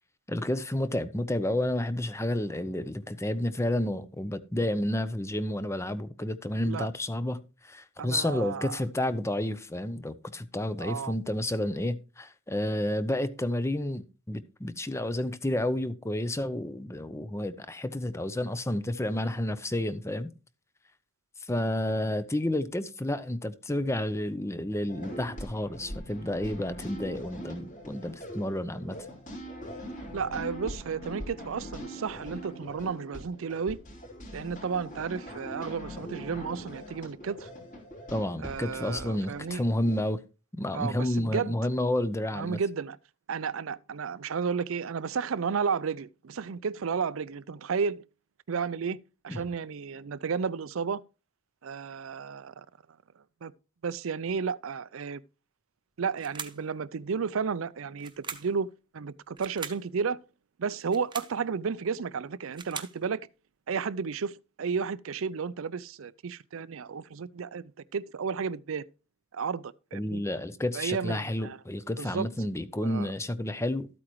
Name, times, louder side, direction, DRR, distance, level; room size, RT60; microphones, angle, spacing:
voice 1, 0.3-20.3 21.5-29.0 38.1-40.2 40.6-42.6 49.3-49.5 69.9-73.9, left 1 dB, 15° left, 0.7 m, -30 dB
voice 2, 8.0-8.8 10.8-11.1 30.1-33.8 34.3-37.5 38.4-39.6 40.7-41.5 42.3-43.0 43.3-48.0 48.5-49.0 49.2-51.0 51.6-52.7 53.4-53.5 53.8-55.2 56.0-60.2 60.6-63.3 63.7-68.9 69.3-70.2 70.7-71.6 72.0-72.3 72.8-73.1, right 6 dB, 75° right, 0.5 m, -32 dB
sound 1, 24.9-40.0, equal, 40° left, 4.1 m, -42 dB
sound 2, 56.2-56.7 58.0-58.6 59.4-59.9 60.8-61.4 62.3-63.0, right 6 dB, 20° right, 1.0 m, -41 dB
13.0 x 8.6 x 3.1 m
head